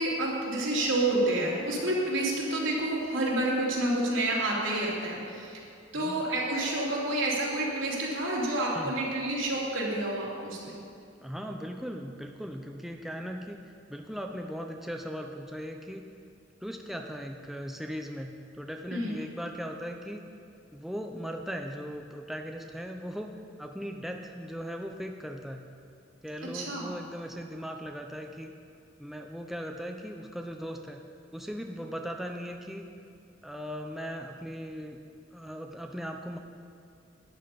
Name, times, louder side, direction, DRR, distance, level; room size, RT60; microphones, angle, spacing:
voice 1, 0.0-5.6 5.9-10.8 18.9-19.1 26.5-26.8, right 1 dB, 85° right, -5 dB, 3.2 m, -29 dB
voice 2, 11.2-16.1 16.6-20.3 20.7-25.6 26.2-28.5 29.0-31.0 31.3-32.9 33.4-35.0 35.3-36.4, equal, ahead, 3 dB, 0.5 m, -38 dB
12.5 x 10.5 x 5.2 m, 2.5 s
head